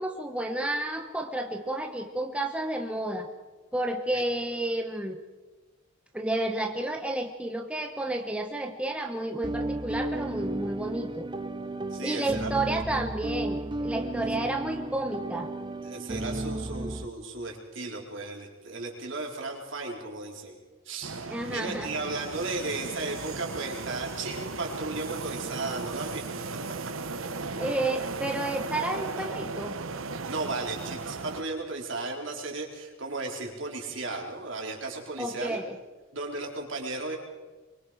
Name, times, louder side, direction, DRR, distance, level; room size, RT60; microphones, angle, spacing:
voice 1, 0.0-3.3 3.7-5.2 6.1-11.3 12.0-15.5 21.3-21.9 27.6-29.8 35.2-35.7, right 1 dB, 5° right, 3 dB, 1.1 m, -31 dB
sound 1, 9.4-17.1, right 2 dB, 25° right, 0.8 m, -34 dB
voice 2, 11.9-12.5 15.8-20.6 20.9-26.4 29.2-29.3 30.3-35.6 36.1-37.2, right 3 dB, 65° right, 0 dB, 4.2 m, -35 dB
sound 2, 21.0-31.4, right 3 dB, 80° right, 1.1 m, -36 dB
24.0 x 23.5 x 5.0 m, 1.3 s
head